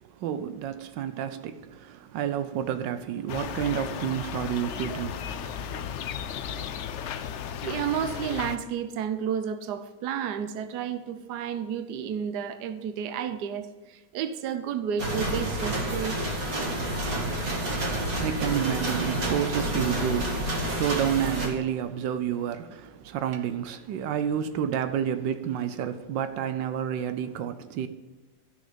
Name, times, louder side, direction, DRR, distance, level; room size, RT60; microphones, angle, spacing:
voice 1, 0.0-5.5 17.7-27.9, right 9 dB, 85° right, 1.3 m, -30 dB
sound 1, 3.3-8.6, left 8 dB, 80° left, 0.6 m, -35 dB
voice 2, 7.6-16.2, right 8 dB, 70° right, 1.3 m, -31 dB
sound 2, 15.0-21.5, right 1 dB, 50° right, 2.5 m, -29 dB
13.0 x 6.3 x 5.2 m
omnidirectional pair, 1.9 m